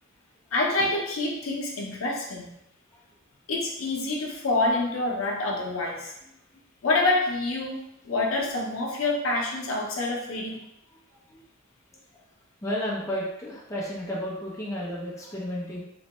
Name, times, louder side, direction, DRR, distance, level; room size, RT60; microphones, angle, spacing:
voice 1, 0.5-2.5 3.5-6.1 6.8-10.6, left 2 dB, 85° left, -2 dB, 0.6 m, -27 dB
voice 2, 12.6-15.8, equal, 15° left, -6 dB, 0.7 m, -32 dB
3.1 x 2.2 x 2.9 m, 0.81 s
head